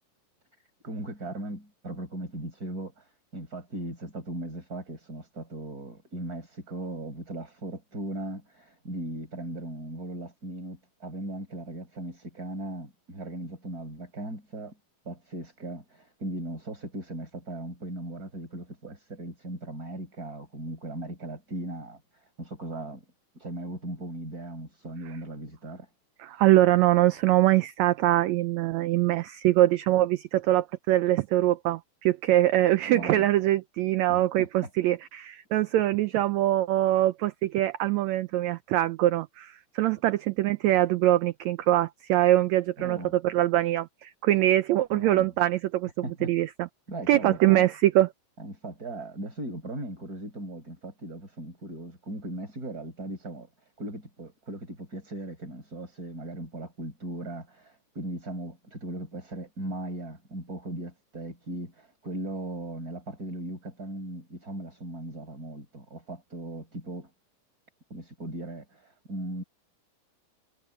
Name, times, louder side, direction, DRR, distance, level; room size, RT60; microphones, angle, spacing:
voice 1, 0.8-14.8 15.1-23.0 23.3-25.9 26.3-26.4 32.9-33.3 34.1-34.7 42.8-43.1 44.9-45.3 46.0-46.3 46.9-47.7 48.4-53.5 53.8-67.1 67.9-69.4, right 1 dB, 25° right, 5.6 m, -38 dB
voice 2, 26.2-45.9 46.2-46.7 47.1-48.1, right 15 dB, 90° right, 1.5 m, -23 dB
omnidirectional pair, 3.9 m